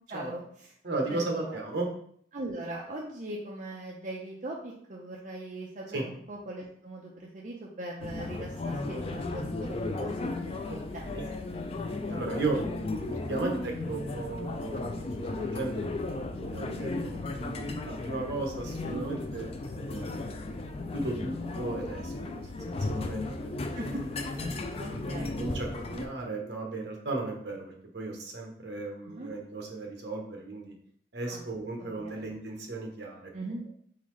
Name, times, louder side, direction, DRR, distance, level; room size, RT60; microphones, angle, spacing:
voice 1, 0.1-0.4 1.1-1.5 2.3-11.2 12.5-12.6 13.4-13.5 18.7-19.0 23.8-24.0 24.8-25.4 29.0-29.3 31.3-31.4 31.8-32.2 33.3-33.6, right 1 dB, 40° right, -3 dB, 0.5 m, -40 dB
voice 2, 0.8-1.9 5.9-6.0 11.1-11.2 11.9-20.4 20.9-23.5 24.8-30.7 31.1-33.2, right 2 dB, 65° right, 0 dB, 1.0 m, -36 dB
sound 1, 8.0-26.1, left 2 dB, 30° left, 0.3 m, -35 dB
3.9 x 3.8 x 3.1 m, 0.63 s
head